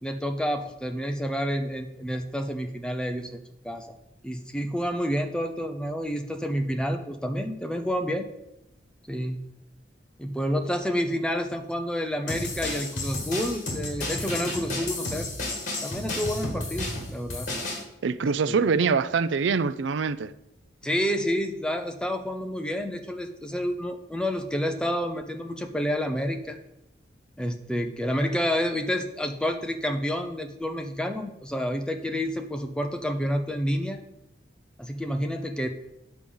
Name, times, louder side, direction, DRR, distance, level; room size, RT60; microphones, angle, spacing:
voice 1, 0.0-4.0 4.2-8.3 9.1-9.4 10.2-15.3 15.8-17.5 18.2-18.7 20.8-26.6 27.4-34.0 34.8-35.7, equal, 5° left, 0.7 m, -29 dB
sound 1, 12.3-17.8, left 2 dB, 40° left, 2.3 m, -32 dB
voice 2, 18.0-20.3, right 5 dB, 80° right, 0.4 m, -24 dB
9.2 x 5.0 x 7.1 m
head